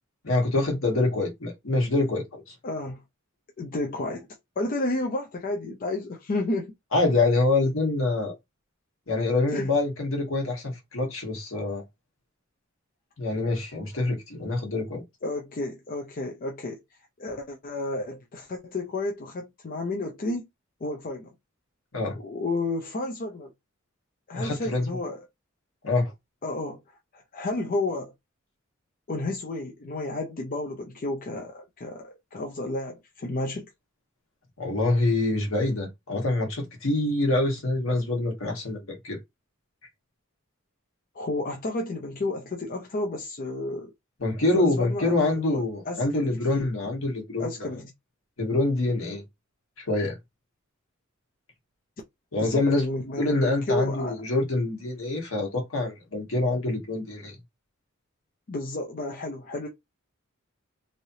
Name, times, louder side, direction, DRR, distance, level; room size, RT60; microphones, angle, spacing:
voice 1, 0.2-2.4 6.9-8.3 9.1-11.8 13.2-15.0 21.9-22.2 24.3-24.9 25.8-26.1 34.6-39.2 44.2-47.7 48.4-49.2 49.9-50.2 52.3-52.8 53.2-57.3, left 2 dB, 70° left, 1.4 m, -25 dB
voice 2, 2.6-3.0 3.6-4.3 4.6-6.7 9.5-9.7 15.2-16.8 17.2-20.5 20.8-21.3 22.2-23.5 24.3-25.2 26.4-28.1 29.1-33.7 41.1-43.9 44.5-46.7 47.4-47.9 52.4-54.1 58.5-59.7, left 2 dB, 40° left, 0.5 m, -32 dB
3.2 x 2.7 x 2.7 m
head